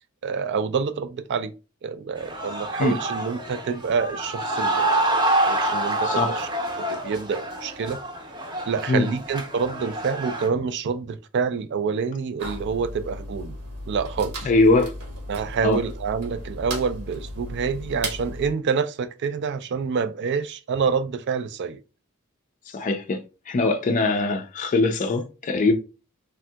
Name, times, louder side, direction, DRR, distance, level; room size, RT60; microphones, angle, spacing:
voice 1, 0.2-1.5 1.8-6.5 6.8-8.0 8.7-13.6 13.9-14.5 15.3-21.8 24.3-24.4, right 5 dB, 50° right, 0.3 m, -27 dB
sound 1, 2.2-10.5, right 1 dB, 20° right, 0.6 m, -27 dB
sound 2, 12.4-18.5, equal, 80° right, 1.1 m, -35 dB
voice 2, 14.5-14.9 15.6-15.8 22.7-23.2 23.5-25.7, left 3 dB, 35° left, 0.4 m, -21 dB
3.4 x 2.7 x 2.2 m
head